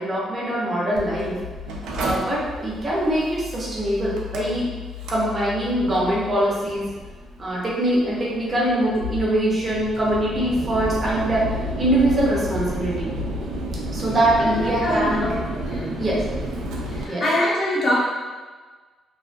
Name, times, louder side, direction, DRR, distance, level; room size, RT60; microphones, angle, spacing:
voice 1, 0.0-1.4 1.9-4.7 5.1-6.9 7.4-11.5 11.8-13.1 13.9-15.4 16.0-16.2 17.1-17.3, right 1 dB, 35° right, -6 dB, 0.8 m, -23 dB
Mechanical fan, 1.0-17.0, equal, 90° right, 0.3 m, -31 dB
voice 2, 14.8-16.0 16.9-18.0, left 1 dB, 45° left, -6 dB, 0.7 m, -24 dB
2.5 x 2.3 x 2.2 m, 1.4 s
cardioid pair, 90°, 0 cm